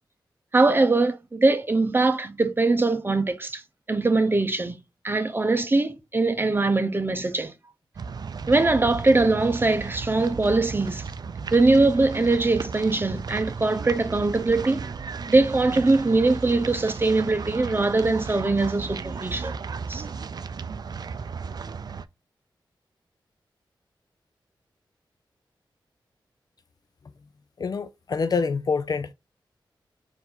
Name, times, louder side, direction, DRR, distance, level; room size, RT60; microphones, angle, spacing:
voice 1, 0.5-3.6 3.9-4.8 5.0-7.5 8.5-11.0 11.5-14.9 15.3-19.5 19.9-20.0, right 3 dB, 25° right, 0.7 m, -22 dB
sound 1, 8.0-22.1, right 5 dB, 55° right, 0.4 m, -35 dB
voice 2, 27.6-29.1, left 5 dB, 50° left, 0.4 m, -26 dB
4.5 x 2.7 x 3.8 m
wide cardioid pair, 95°, 8 cm